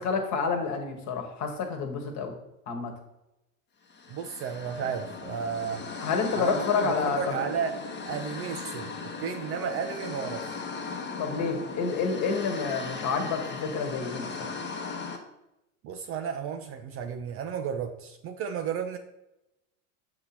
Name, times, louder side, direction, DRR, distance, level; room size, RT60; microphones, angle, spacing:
voice 1, 0.0-2.3 2.7-2.9 6.0-7.4 11.2-14.5, left 5 dB, 40° left, 4 dB, 1.4 m, -29 dB
sound 1, 3.9-15.2, left 4 dB, 25° left, 1.0 m, -37 dB
voice 2, 4.1-5.8 6.4-7.8 8.0-8.9 9.2-10.4 15.8-19.0, right 7 dB, 35° right, 7 dB, 0.4 m, -33 dB
6.8 x 2.8 x 5.8 m, 0.90 s
hypercardioid pair, 100°, 43 cm